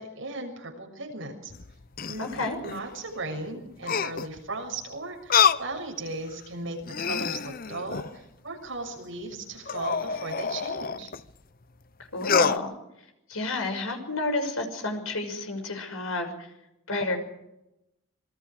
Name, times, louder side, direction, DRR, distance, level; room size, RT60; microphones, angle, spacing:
voice 1, 0.0-1.5 2.1-2.3 2.6-11.1, right 2 dB, 65° right, 2 dB, 6.8 m, -37 dB
sound 1, 1.5-2.8 3.8-4.4 5.3-5.7 6.3-6.4 6.8-8.2 9.7-11.2 12.2-12.6, left 6 dB, 40° left, 0.7 m, -27 dB
voice 2, 2.2-2.6 12.1-12.7 13.3-16.5 16.9-17.2, left 2 dB, 80° left, 5 dB, 6.1 m, -30 dB
27.0 x 22.5 x 4.9 m, 0.88 s
head